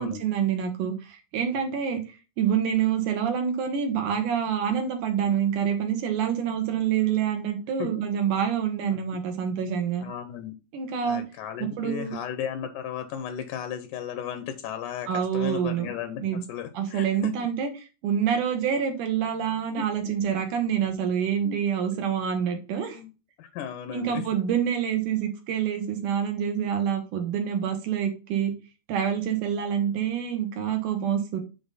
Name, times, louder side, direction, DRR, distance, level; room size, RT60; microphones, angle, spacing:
voice 1, 0.0-10.1 10.7-11.2 11.8-12.2 15.1-15.9 16.2-16.4 16.7-23.0 23.9-28.5 28.9-31.4, right 8 dB, 75° right, 2.7 m, -27 dB
voice 2, 10.0-10.5 11.0-17.5 19.8-19.9 21.4-21.6 21.9-22.0 22.7-23.1 23.4-24.2, left 9 dB, 80° left, 2.1 m, -35 dB
8.8 x 3.7 x 4.1 m
omnidirectional pair, 3.8 m